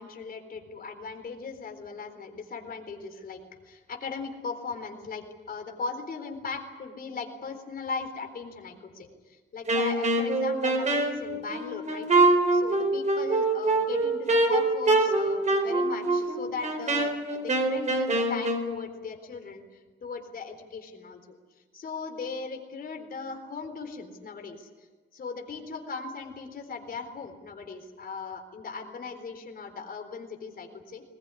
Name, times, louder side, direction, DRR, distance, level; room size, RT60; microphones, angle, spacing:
voice 1, 0.0-3.4 3.6-12.1 12.5-19.6 20.0-21.4 21.7-24.7 25.1-31.0, left 4 dB, 45° left, 5 dB, 4.0 m, -38 dB
Wind instrument woodwind instrument, 9.7-18.7, right 2 dB, 35° right, 4.2 m, -24 dB
21.0 x 20.0 x 9.9 m, 1.3 s
cardioid pair, 110°, 20 cm